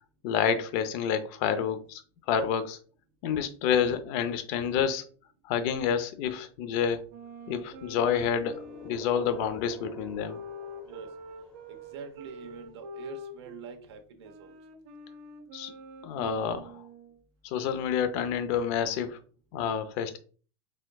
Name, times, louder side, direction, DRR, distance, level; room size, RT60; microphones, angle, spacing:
voice 1, 0.2-2.0 2.3-2.8 3.2-5.1 5.5-7.0 7.5-10.4 15.5-15.7 16.0-16.8 17.4-19.2 19.5-20.2, left 8 dB, 45° left, 0.6 m, -28 dB
sound 1, 7.1-13.8 14.2-17.2, equal, 55° right, 0.7 m, -46 dB
sound 2, 7.5-12.5, left 4 dB, 5° left, 0.7 m, -48 dB
voice 2, 11.7-14.5, right 5 dB, 85° right, 1.0 m, -45 dB
4.3 x 3.7 x 2.3 m
supercardioid pair, 150°, 14 cm